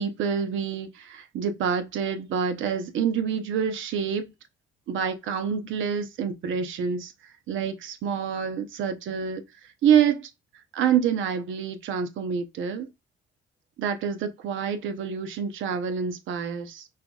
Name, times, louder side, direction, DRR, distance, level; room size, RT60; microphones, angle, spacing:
voice 1, 0.0-4.3 4.9-7.1 7.5-9.4 9.8-10.3 10.7-12.9 13.8-16.8, right 7 dB, 75° right, 0.7 m, -27 dB
5.6 x 2.4 x 2.3 m
cardioid pair, 90°, 20 cm